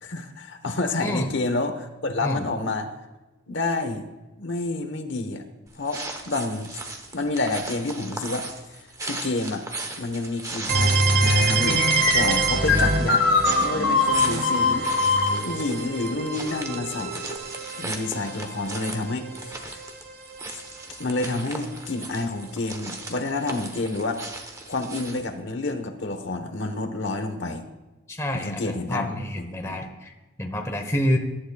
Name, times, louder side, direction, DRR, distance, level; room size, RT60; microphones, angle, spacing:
voice 1, 0.0-2.9 3.5-4.0 4.4-5.4 5.8-6.7 7.1-8.5 9.0-9.6 10.0-11.8 12.1-13.2 13.6-14.9 15.4-17.2 17.8-19.8 21.0-24.2 24.7-27.6 28.3-29.2 29.6-29.8, left 2 dB, 60° left, 7 dB, 1.1 m, -29 dB
voice 2, 1.0-1.3 2.2-2.5 28.1-31.2, equal, 15° left, 3 dB, 1.0 m, -28 dB
sound 1, 5.7-25.3, right 3 dB, 15° right, 1.0 m, -37 dB
sound 2, 10.7-20.4, right 3 dB, 50° right, 1.2 m, -26 dB
sound 3, 11.2-17.4, left 4 dB, 85° left, 2.2 m, -24 dB
21.5 x 11.0 x 2.4 m, 1.1 s
head